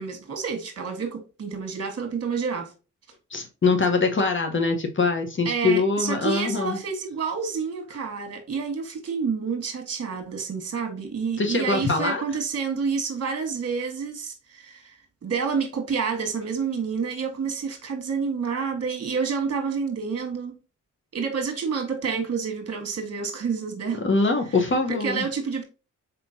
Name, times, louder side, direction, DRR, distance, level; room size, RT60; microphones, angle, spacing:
voice 1, 0.0-2.7 5.4-14.9 15.2-20.5 21.1-24.1 24.9-25.6, right 5 dB, 55° right, 1.3 m, -29 dB
voice 2, 3.3-6.8 11.4-12.2 23.9-25.3, left 3 dB, 40° left, 0.9 m, -23 dB
4.1 x 3.7 x 2.6 m
cardioid pair, 50°, 30 cm